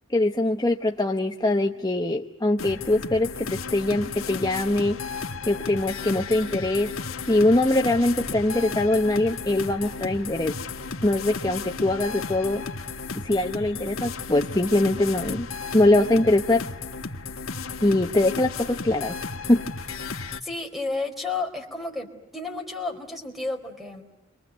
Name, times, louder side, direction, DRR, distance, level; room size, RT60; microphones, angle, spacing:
voice 1, 0.1-5.0 5.4-6.9 7.3-10.6 11.0-12.6 13.1-15.5 15.7-16.7 17.8-19.2 19.5-19.6, left 1 dB, 20° left, 4 dB, 1.0 m, -22 dB
sound 1, 2.6-20.4, left 4 dB, 80° left, 1.6 m, -34 dB
voice 2, 20.4-24.0, left 3 dB, ahead, 3 dB, 4.4 m, -32 dB
28.5 x 25.0 x 8.1 m, 0.91 s
head